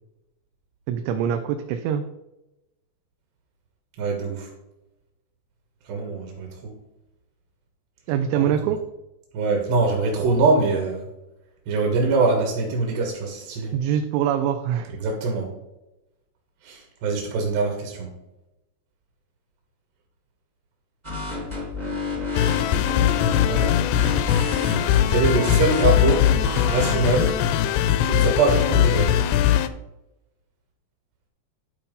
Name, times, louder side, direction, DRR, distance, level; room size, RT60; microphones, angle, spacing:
voice 1, 0.9-2.1 8.1-8.8 13.7-14.9, right 9 dB, 85° right, 7 dB, 2.9 m, -24 dB
voice 2, 4.0-4.5 5.9-6.8 8.4-8.5 9.3-11.1 11.7-13.7 15.0-15.5 16.6-18.1 23.4-23.8 25.1-26.3 26.7-27.4 28.0-29.1, right 3 dB, 70° right, 0 dB, 3.5 m, -23 dB
sound 1, 21.0-27.3, left 2 dB, 40° right, 0.6 m, -30 dB
sound 2, 22.3-29.7, left 11 dB, 85° left, 2.4 m, -20 dB
12.0 x 4.2 x 5.3 m, 0.94 s
omnidirectional pair, 5.2 m